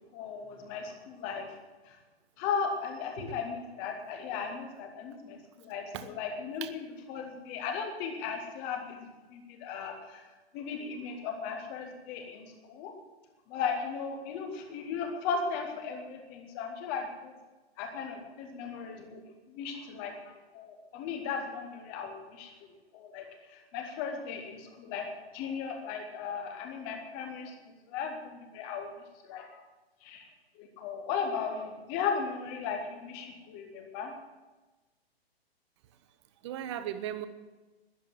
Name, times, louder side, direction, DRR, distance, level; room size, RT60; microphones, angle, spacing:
voice 1, 0.1-1.5 2.4-10.2 10.5-12.9 13.5-17.3 17.8-19.2 19.5-22.5 22.9-28.9 29.2-29.6 30.0-30.2 30.6-34.1, left 6 dB, 5° left, 4 dB, 0.4 m, -36 dB
voice 2, 36.4-37.3, right 11 dB, 25° right, 12 dB, 0.8 m, -37 dB
13.0 x 10.0 x 7.3 m, 1.2 s
hypercardioid pair, 155°, 32 cm